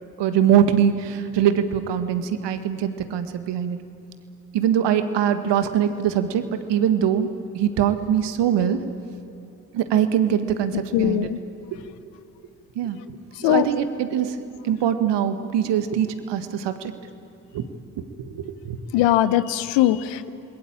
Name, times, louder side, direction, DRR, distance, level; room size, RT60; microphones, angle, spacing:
voice 1, 0.2-3.8 4.5-6.4 6.7-7.3 7.5-8.8 9.7-11.3 12.7-13.0 13.4-14.3 14.6-16.9 17.5-17.6 18.0-18.3 18.6-18.8, right 9 dB, 70° right, 10 dB, 1.8 m, -22 dB
voice 2, 10.9-11.4 13.4-13.7 18.9-20.3, left 13 dB, 75° left, 14 dB, 1.0 m, -20 dB
28.0 x 21.0 x 9.0 m, 2.9 s
hypercardioid pair, 45°, 44 cm